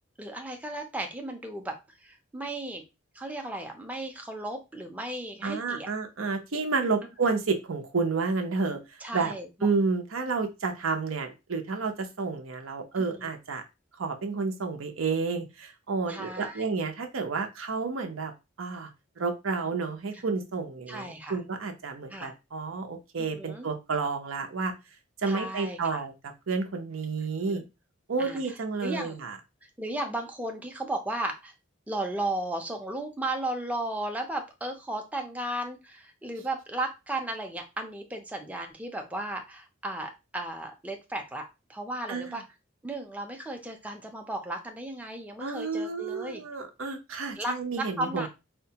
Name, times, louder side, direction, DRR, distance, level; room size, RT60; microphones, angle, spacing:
voice 1, 0.2-2.8 3.1-5.9 9.0-9.5 13.0-13.3 16.1-16.6 20.1-20.2 20.9-21.4 22.1-22.3 23.2-23.7 25.3-26.0 27.4-27.6 28.2-28.4 28.8-29.2 29.8-31.5 31.9-41.4 41.7-42.4 42.8-46.4 47.4-48.3, right 1 dB, 5° right, 3 dB, 0.5 m, -35 dB
voice 2, 5.4-9.3 9.6-13.6 14.0-18.3 18.6-18.9 19.2-24.7 25.2-26.1 26.5-27.6 28.1-29.4 42.1-42.4 45.4-48.3, right 4 dB, 90° right, 5 dB, 0.7 m, -30 dB
4.2 x 2.2 x 2.8 m, 0.26 s
head